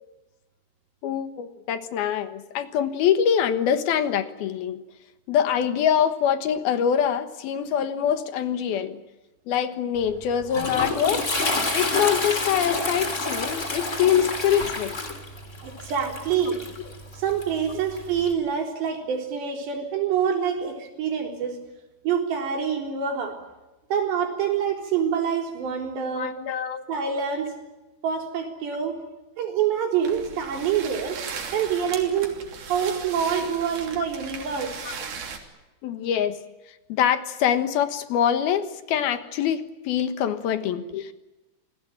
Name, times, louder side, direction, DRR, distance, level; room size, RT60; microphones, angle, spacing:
voice 1, 1.0-4.8 5.3-9.0 9.5-11.3 11.7-15.0 26.2-26.9 34.8-35.0 35.8-36.4 36.9-41.1, left 9 dB, 70° left, 10 dB, 3.1 m, -24 dB
Toilet flush, 10.0-18.3, left 2 dB, 20° left, 2.9 m, -29 dB
voice 2, 15.6-16.7 17.1-21.6 22.0-23.4 23.9-26.4 26.9-27.5 28.0-29.0 29.4-31.2 31.5-32.4 32.7-34.8, right 7 dB, 85° right, 4 dB, 6.1 m, -26 dB
sound 1, 30.0-35.4, right 6 dB, 65° right, 4.8 m, -37 dB
28.0 x 19.5 x 8.9 m, 1.0 s
omnidirectional pair, 4.8 m